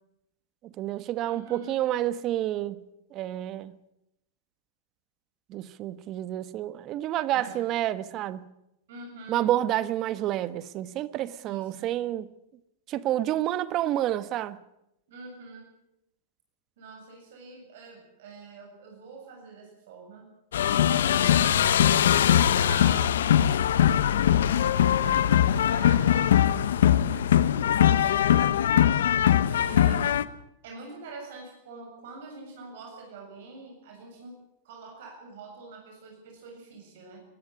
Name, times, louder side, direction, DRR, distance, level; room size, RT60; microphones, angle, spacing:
voice 1, 0.6-2.8 3.1-3.8 5.5-8.5 9.3-12.3 12.9-14.6, right 13 dB, 40° right, 1.2 m, -29 dB
voice 2, 1.2-1.7 7.3-7.6 8.9-9.5 11.5-11.9 15.1-15.7 16.8-20.3 21.0-23.2 23.9-28.6 29.2-30.1 30.6-34.3 34.6-37.2, right 4 dB, 70° right, 7.6 m, -45 dB
sound 1, 20.5-30.2, left 10 dB, 85° left, 1.0 m, -21 dB
21.5 x 13.5 x 9.8 m
hypercardioid pair, 125°, 0 cm